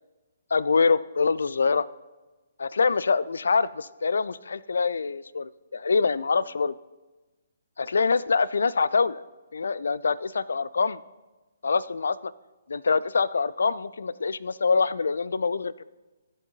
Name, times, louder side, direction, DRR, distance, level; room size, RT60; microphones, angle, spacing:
voice 1, 0.5-1.9 2.6-6.7 7.8-9.2 9.5-11.0 11.6-12.3 12.7-15.8, left 4 dB, 60° left, 19 dB, 0.3 m, -25 dB
17.5 x 8.2 x 2.8 m, 1.2 s
figure-of-eight pair, 130°, 0 cm